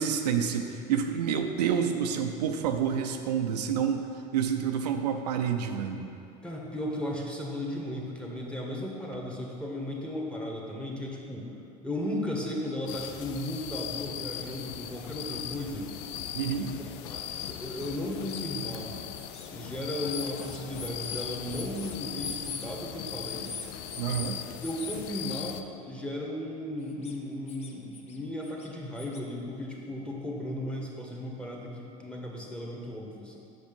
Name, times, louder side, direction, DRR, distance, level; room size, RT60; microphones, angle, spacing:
voice 1, 0.0-4.1 4.3-6.1 16.3-16.7 24.0-24.4, right 7 dB, 90° right, 5 dB, 0.5 m, -28 dB
voice 2, 6.4-11.5 11.8-15.9 16.6-18.9 19.5-23.5 24.6-33.4, left 1 dB, 5° left, -2 dB, 1.3 m, -35 dB
sound 1, 12.7-12.8 13.1-13.2 14.0-14.1 14.4-14.5 15.1-15.2 16.1-16.2 16.6-16.7 17.4-18.4 19.1-19.5 20.1-22.7 23.2-24.3 24.6-25.0 26.8-27.1 27.5-28.2 28.4-29.2, left 5 dB, 30° left, 0.8 m, -42 dB
sound 2, 12.9-25.6, left 10 dB, 60° left, 0.4 m, -39 dB
5.9 x 5.2 x 5.3 m, 2.6 s
hypercardioid pair, 85°, 20 cm